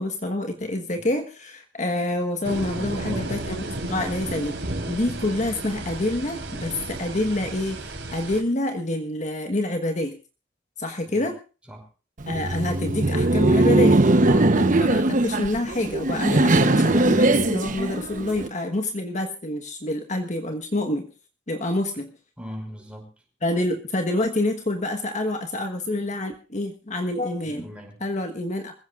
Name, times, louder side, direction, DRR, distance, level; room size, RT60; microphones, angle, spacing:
voice 1, 0.0-4.5 4.9-10.2 10.8-11.4 12.3-21.1 21.5-22.1 23.4-27.7 28.0-28.7, left 1 dB, 40° left, 5 dB, 1.4 m, -27 dB
sound 1, 2.4-8.4, right 1 dB, 75° right, 4.0 m, -33 dB
voice 2, 2.7-3.9 11.1-11.3 11.7-11.8 22.4-23.1 27.4-28.0, equal, 5° right, 2 dB, 5.3 m, -40 dB
Laughter, 12.2-18.5, right 2 dB, 45° right, 1.0 m, -20 dB
25.5 x 15.5 x 2.5 m, 0.34 s
head